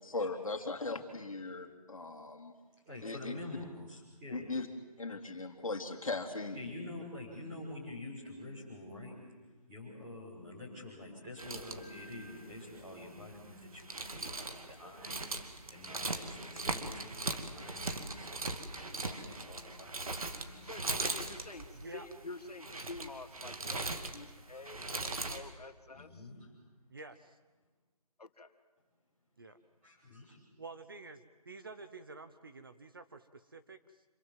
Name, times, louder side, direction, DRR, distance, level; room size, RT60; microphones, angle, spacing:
voice 1, 0.0-2.5 3.0-3.3 4.3-4.7 5.0-6.6, left 3 dB, 60° left, 5 dB, 2.8 m, -38 dB
voice 2, 2.8-4.4 6.5-9.1 9.7-21.0 24.0-24.1 24.5-24.6 25.9-26.5 29.8-30.4, left 2 dB, 10° right, -6 dB, 6.0 m, -47 dB
sound 1, 11.4-25.4, right 2 dB, 65° right, 2.5 m, -40 dB
voice 3, 20.6-26.3 28.2-28.5, left 3 dB, 75° left, 8 dB, 2.1 m, -48 dB
voice 4, 21.8-22.1 26.9-27.4 29.4-29.6 30.6-34.0, right 3 dB, 35° right, 9 dB, 0.9 m, -49 dB
26.5 x 23.5 x 7.7 m, 1.2 s
figure-of-eight pair, 175°, 20 cm